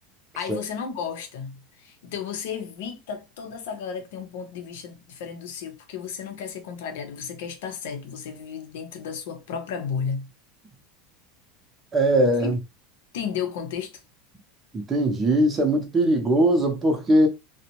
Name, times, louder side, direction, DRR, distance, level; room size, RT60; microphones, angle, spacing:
voice 1, 0.4-10.3 12.4-12.6 13.1-13.9, left 7 dB, 80° left, 0.6 m, -33 dB
voice 2, 11.9-12.6 14.7-17.3, right 1 dB, 15° right, 0.6 m, -20 dB
2.6 x 2.0 x 2.9 m
supercardioid pair, 150°, 0 cm